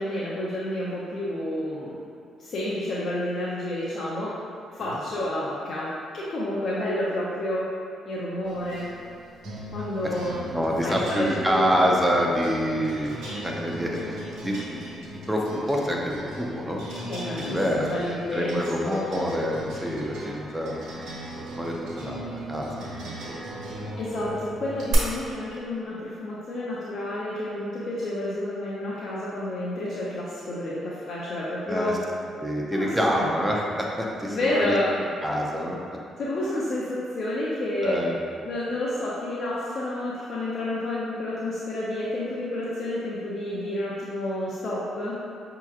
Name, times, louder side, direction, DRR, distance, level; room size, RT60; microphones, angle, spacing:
voice 1, 0.0-2.0 2.4-4.4 4.7-7.7 8.1-8.9 9.7-10.4 10.8-11.9 17.0-19.0 24.0-32.0 32.7-33.3 34.3-34.9 36.2-37.9 38.4-45.2, left 1 dB, 55° left, -7 dB, 0.6 m, -30 dB
sound 1, 8.5-24.9, right 1 dB, 80° right, 1.1 m, -38 dB
voice 2, 10.5-14.2 14.4-16.8 17.4-20.7 21.5-22.8 23.2-23.7 31.7-31.9 32.4-34.7 35.2-35.8 37.8-38.2, equal, 10° right, -2 dB, 0.6 m, -27 dB
5.6 x 2.9 x 2.4 m, 2.5 s
cardioid pair, 90°, 0 cm